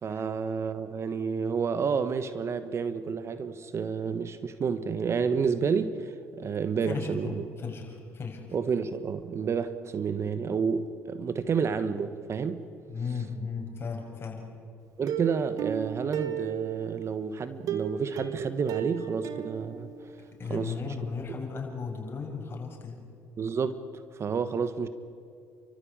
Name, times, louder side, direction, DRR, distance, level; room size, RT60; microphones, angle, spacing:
voice 1, 0.0-7.4 8.5-12.6 15.0-19.9 20.5-20.9 23.4-23.8 24.1-24.9, right 6 dB, 45° right, 1.3 m, -30 dB
voice 2, 6.8-8.5 12.9-14.4 20.4-23.0, left 5 dB, 35° left, 6.9 m, -36 dB
Plucked string instrument, 15.1-17.0 17.7-20.5 20.8-20.9 21.2-21.3, right 10 dB, 65° right, 1.7 m, -34 dB
30.0 x 14.0 x 8.8 m
supercardioid pair, 75°, 7 cm